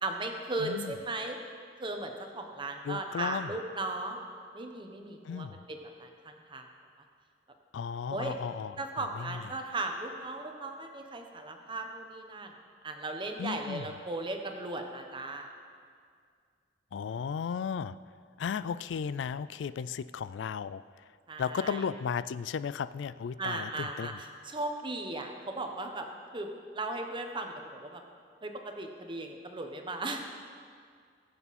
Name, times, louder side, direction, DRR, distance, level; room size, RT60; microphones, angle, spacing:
voice 1, 0.0-1.4 1.8-4.2 4.5-6.7 8.1-8.4 8.8-12.5 12.8-15.5 21.3-21.8 23.4-26.1 26.3-28.0 28.4-30.2, right 2 dB, 25° right, 4 dB, 1.1 m, -37 dB
voice 2, 0.6-0.9 2.8-3.5 5.2-5.6 7.7-9.4 13.4-13.9 16.9-18.0 18.4-20.8 21.4-24.2, left 6 dB, 75° left, 16 dB, 0.3 m, -35 dB
20.5 x 7.0 x 4.2 m, 2.1 s
head